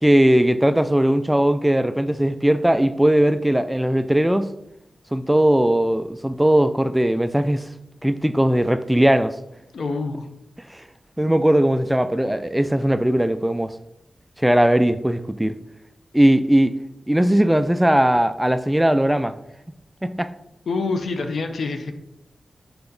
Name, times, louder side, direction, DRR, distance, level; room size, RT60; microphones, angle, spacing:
voice 1, 0.0-4.5 5.1-7.6 8.0-9.3 11.2-13.7 14.4-15.6 16.1-16.7 17.1-19.3 20.0-20.3, right 1 dB, 10° right, 0.4 m, -19 dB
voice 2, 9.7-10.3 20.7-21.9, left 3 dB, 85° left, 0.8 m, -26 dB
7.0 x 3.8 x 5.3 m
wide cardioid pair, 80°, 0 cm